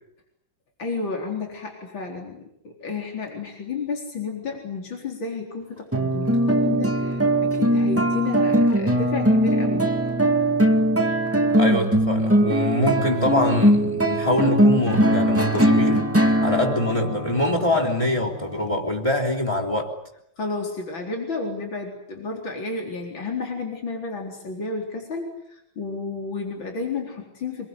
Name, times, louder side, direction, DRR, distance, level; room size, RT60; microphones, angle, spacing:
voice 1, 0.8-9.9 20.4-27.7, left 4 dB, 75° left, 2 dB, 4.9 m, -32 dB
sound 1, 5.9-18.7, right 1 dB, 5° right, 2.0 m, -21 dB
voice 2, 11.5-16.1 16.4-19.9, left 1 dB, 15° left, 3 dB, 3.7 m, -24 dB
25.5 x 23.0 x 9.7 m, 0.77 s
omnidirectional pair, 2.2 m